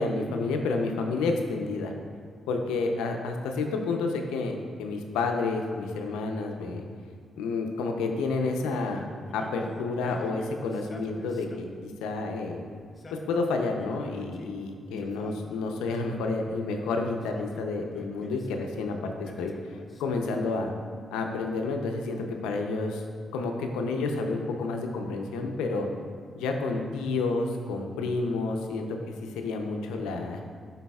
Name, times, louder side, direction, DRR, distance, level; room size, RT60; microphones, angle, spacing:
voice 1, 0.0-1.9 2.5-6.8 7.4-9.1 9.3-12.6 13.1-19.5 20.0-20.7 21.1-23.0 23.3-25.9 26.4-28.9 29.2-30.4, left 3 dB, 85° left, 3 dB, 0.6 m, -30 dB
Male speech man speaking, 9.3-11.8 12.8-14.5 15.0-16.3 17.1-18.6 19.2-20.7, left 2 dB, 45° left, 0.7 m, -48 dB
11.0 x 4.0 x 2.3 m, 2.1 s
hypercardioid pair, 45°, 0 cm